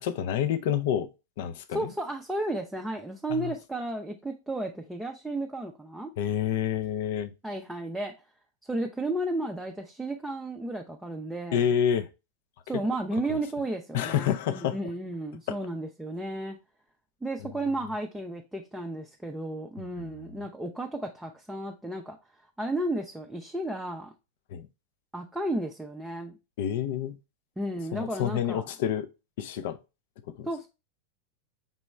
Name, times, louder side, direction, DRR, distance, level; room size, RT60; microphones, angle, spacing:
voice 1, 0.0-1.1 1.4-1.9 3.3-3.5 6.2-7.3 11.5-12.1 13.3-13.4 13.9-14.8 20.0-20.1 24.5-24.7 26.6-27.1 27.9-29.1 29.4-29.8 30.4-30.5, left 9 dB, 50° left, 0.5 m, -28 dB
voice 2, 1.7-6.1 7.4-8.1 8.6-11.6 12.7-16.6 17.2-22.2 22.6-24.1 25.1-26.3 27.6-28.6 30.5-30.7, right 1 dB, 5° right, 0.5 m, -33 dB
5.3 x 3.1 x 3.0 m
figure-of-eight pair, 90°, 0 cm